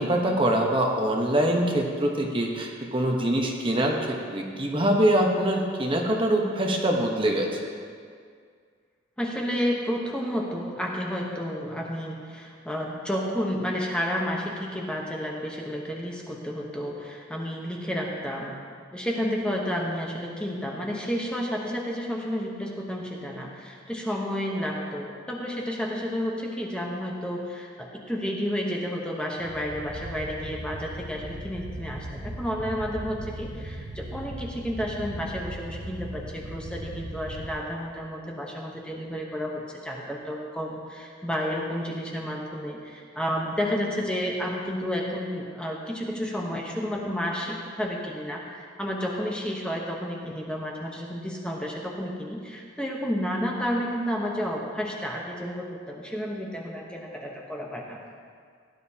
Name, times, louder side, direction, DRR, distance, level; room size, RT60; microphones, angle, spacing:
voice 1, 0.0-7.5, right 1 dB, 25° right, 0 dB, 1.0 m, -24 dB
voice 2, 9.2-18.6 18.9-58.0, equal, 5° left, -2 dB, 0.9 m, -31 dB
sound 1, 29.4-37.5, right 1 dB, 60° right, 1.0 m, -38 dB
17.0 x 11.0 x 2.8 m, 2.1 s
head